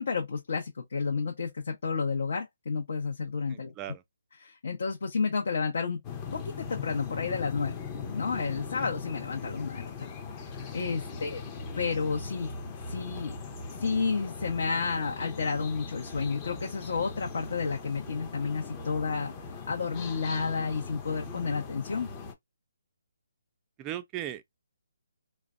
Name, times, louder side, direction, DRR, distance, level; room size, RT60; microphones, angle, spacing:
voice 1, 0.0-3.7 4.4-6.0 6.3-7.8 8.1-10.1 10.5-11.4 11.8-12.5 12.9-13.4 13.8-19.3 19.7-22.1, left 5 dB, 65° left, 0.8 m, -31 dB
voice 2, 3.5-4.0 11.1-11.2 23.8-24.4, right 12 dB, 20° right, 0.3 m, -38 dB
sound 1, 6.0-22.3, left 5 dB, 20° left, 0.6 m, -40 dB
3.2 x 2.2 x 2.5 m
hypercardioid pair, 160°, 0 cm